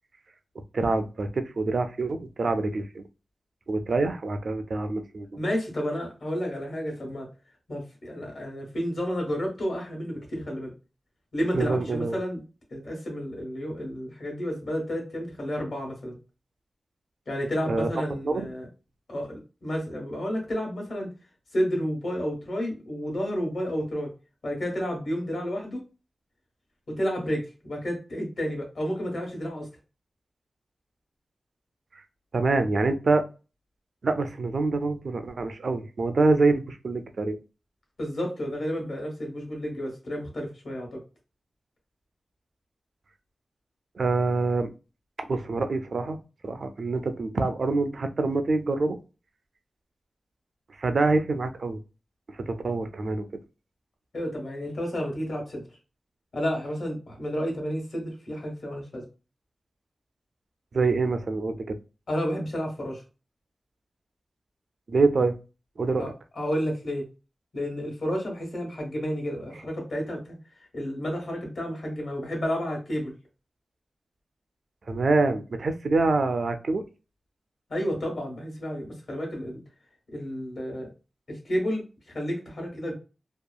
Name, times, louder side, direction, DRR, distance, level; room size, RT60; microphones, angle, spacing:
voice 1, 0.7-3.1 3.7-5.3 11.5-12.2 17.7-17.9 18.2-18.5 32.3-33.2 34.0-37.4 44.0-44.7 45.2-46.2 46.4-49.0 50.8-51.8 52.3-53.3 60.7-61.7 64.9-65.4 65.8-66.1 74.9-76.8, right 3 dB, 60° right, 8 dB, 0.3 m, -25 dB
voice 2, 5.4-7.3 7.7-10.7 11.3-12.4 12.7-16.1 17.3-18.7 19.1-21.1 21.5-24.1 24.4-25.8 26.9-29.7 38.0-41.0 54.1-55.6 56.3-59.0 62.1-63.0 66.0-67.0 67.5-70.4 70.7-73.1 77.7-79.6 80.1-80.9 81.3-81.8 82.1-82.9, equal, 60° left, 0 dB, 1.1 m, -31 dB
2.8 x 2.3 x 2.2 m, 0.32 s
wide cardioid pair, 130°, 0 cm